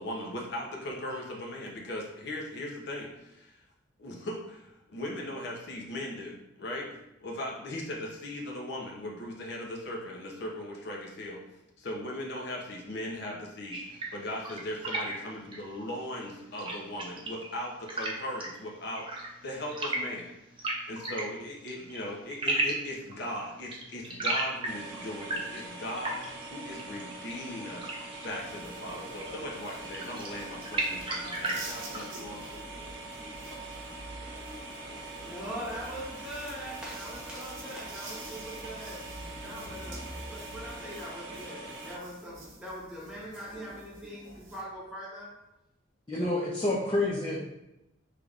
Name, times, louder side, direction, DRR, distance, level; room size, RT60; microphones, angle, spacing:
voice 1, 0.0-3.6 4.0-11.4 11.8-32.5, left 1 dB, 60° left, -1 dB, 0.8 m, -38 dB
sound 1, 13.7-32.2, right 2 dB, 25° right, 0.7 m, -37 dB
sound 2, 24.6-42.0, right 2 dB, 65° right, 0.8 m, -43 dB
sound 3, 28.4-44.6, right 1 dB, 80° right, 1.1 m, -47 dB
voice 2, 35.2-39.0 39.4-45.4, equal, 5° right, -6 dB, 1.2 m, -42 dB
voice 3, 46.1-47.4, left 2 dB, 20° left, -5 dB, 0.6 m, -28 dB
5.6 x 3.4 x 2.5 m, 0.90 s
head